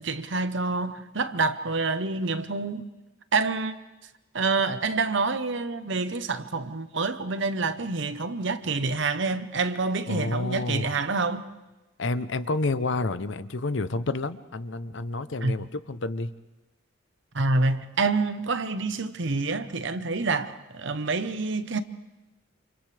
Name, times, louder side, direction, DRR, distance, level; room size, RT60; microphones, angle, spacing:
voice 1, 0.0-2.9 3.3-3.7 4.3-11.4 15.4-15.5 17.3-21.8, right 3 dB, 60° right, 0.9 m, -27 dB
voice 2, 10.1-10.9 12.0-16.3, left 2 dB, 60° left, 0.7 m, -29 dB
29.0 x 28.0 x 3.4 m
head